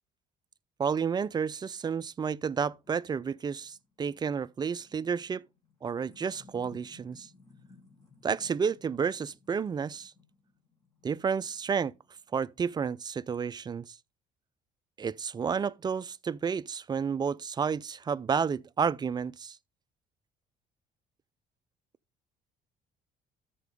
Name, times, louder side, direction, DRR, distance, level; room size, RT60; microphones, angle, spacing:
voice 1, 0.8-5.5 5.8-7.3 8.2-10.1 11.0-11.9 12.3-14.0 15.0-19.6, right 6 dB, 25° right, 0.3 m, -31 dB
sound 1, 2.8-12.3, left 4 dB, 20° left, 3.8 m, -60 dB
13.0 x 4.6 x 3.5 m
cardioid pair, 110°, 17 cm